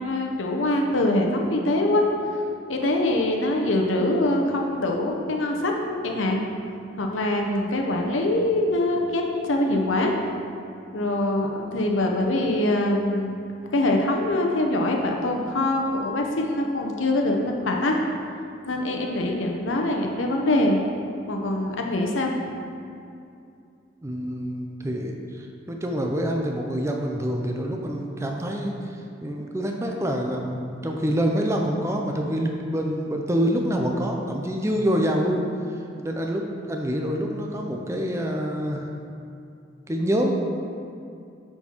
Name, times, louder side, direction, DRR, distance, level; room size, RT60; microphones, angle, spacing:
voice 1, 0.0-2.1 2.7-6.4 7.0-10.1 10.9-13.3 13.7-18.0 18.6-20.8 21.3-22.3, left 1 dB, 85° left, 1 dB, 0.8 m, -24 dB
voice 2, 24.0-35.5 36.0-38.9 39.9-40.3, equal, 15° right, 1 dB, 0.5 m, -26 dB
9.2 x 4.5 x 4.4 m, 2.5 s
head